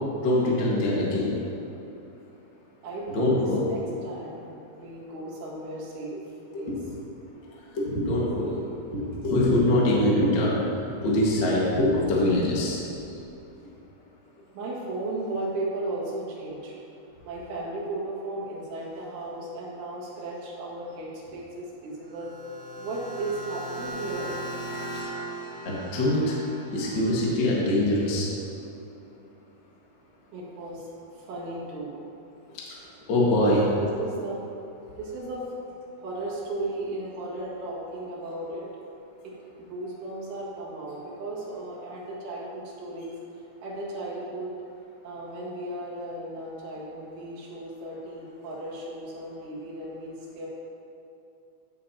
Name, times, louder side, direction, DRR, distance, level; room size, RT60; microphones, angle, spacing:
voice 1, 0.2-1.4 3.1-3.6 6.5-6.8 7.7-13.2 25.6-26.4 26.7-28.3 32.7-32.8 33.1-33.6, left 1 dB, 80° left, -5 dB, 1.0 m, -24 dB
voice 2, 2.8-4.5 4.7-6.2 6.5-6.7 14.5-16.7 17.2-22.3 22.8-24.3 30.3-32.0 33.4-34.4 35.0-35.6 36.0-38.7 39.2-43.1 43.6-44.5 45.0-50.5, right 2 dB, 85° right, -6 dB, 4.4 m, -35 dB
sound 1, 22.1-27.1, right 1 dB, 65° right, 3.1 m, -38 dB
15.0 x 7.6 x 2.9 m, 2.9 s
omnidirectional pair, 5.3 m